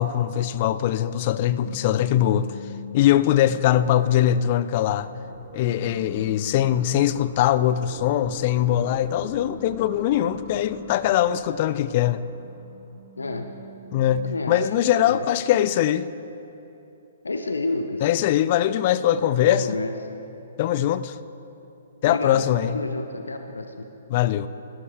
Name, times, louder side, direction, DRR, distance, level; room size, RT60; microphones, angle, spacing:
voice 1, 0.0-2.5 2.9-5.1 5.5-12.3 13.9-16.1 18.0-19.8 20.6-21.2 22.0-22.8 24.1-24.5, left 11 dB, 40° left, 15 dB, 0.4 m, -22 dB
sound 1, 1.5-3.7 4.4-7.5 8.6-11.6 12.0-15.0, left 3 dB, 90° right, 1.9 m, -44 dB
sound 2, 2.8-13.2, right 1 dB, 5° right, 1.2 m, -46 dB
voice 2, 13.2-13.5 14.2-14.7 15.0-15.3 17.2-18.1 19.4-19.9 22.0-23.7, left 3 dB, 75° left, 7 dB, 0.7 m, -29 dB
16.0 x 12.5 x 3.4 m, 2.9 s
figure-of-eight pair, 120°, 0 cm